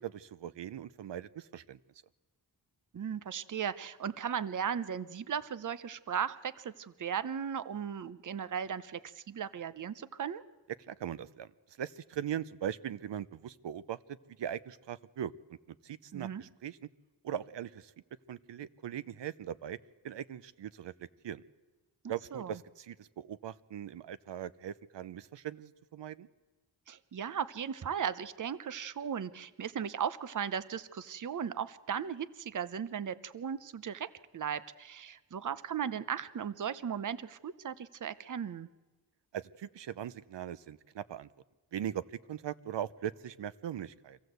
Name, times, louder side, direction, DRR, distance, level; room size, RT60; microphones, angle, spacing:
voice 1, 0.0-1.8 10.9-11.5 11.8-15.6 15.8-16.8 17.2-17.9 18.3-19.8 20.0-20.9 21.2-21.4 22.1-26.3 39.3-41.3 41.7-44.2, right 10 dB, 85° right, 16 dB, 0.8 m, -40 dB
voice 2, 2.9-10.4 16.1-16.4 22.3-22.5 26.9-38.7, right 8 dB, 45° right, 15 dB, 0.8 m, -37 dB
25.0 x 15.5 x 8.0 m, 1.2 s
wide cardioid pair, 95°, 42 cm